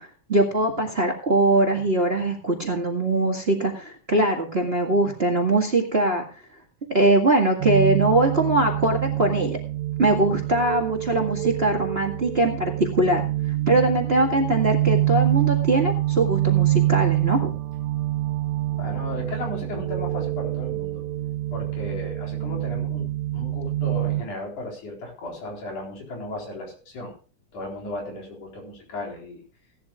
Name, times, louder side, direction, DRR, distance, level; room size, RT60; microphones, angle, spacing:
voice 1, 0.0-6.2 6.9-9.6 10.0-13.2 13.7-17.5, right 2 dB, 25° right, 1 dB, 1.7 m, -22 dB
sound 1, 7.6-24.2, right 15 dB, 80° right, 2.1 m, -26 dB
voice 2, 18.7-21.0 21.5-27.1 27.5-29.4, left 1 dB, 85° left, 0 dB, 5.6 m, -35 dB
18.0 x 12.0 x 2.4 m, 0.38 s
omnidirectional pair, 3.4 m